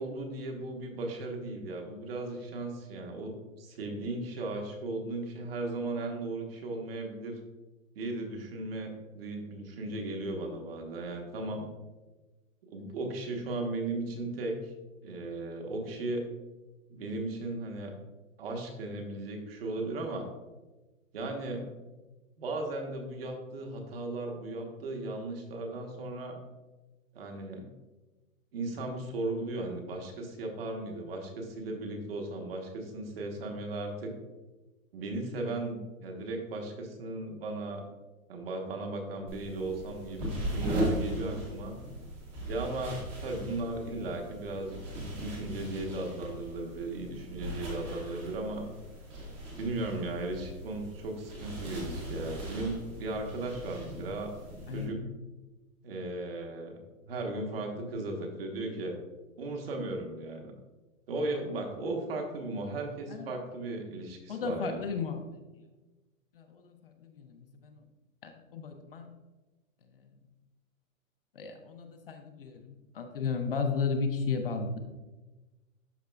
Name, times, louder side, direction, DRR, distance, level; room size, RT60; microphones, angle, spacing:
voice 1, 0.0-7.4 7.9-11.7 12.7-14.6 15.0-16.2 16.9-17.9 18.4-20.3 21.1-21.7 22.4-26.4 27.1-27.6 28.5-34.1 34.9-37.8 38.3-41.8 42.5-48.7 49.6-54.3 54.7-55.0 55.8-56.8 57.1-59.0 59.4-60.5 61.1-64.8, right 2 dB, 45° right, 2 dB, 1.2 m, -36 dB
sound 1, 39.3-54.9, equal, 15° right, 0.8 m, -38 dB
voice 2, 64.3-65.4 66.3-67.8 68.2-69.2 71.3-74.8, left 5 dB, 40° left, 5 dB, 0.6 m, -34 dB
12.0 x 4.2 x 2.3 m, 1.2 s
hypercardioid pair, 165°, 42 cm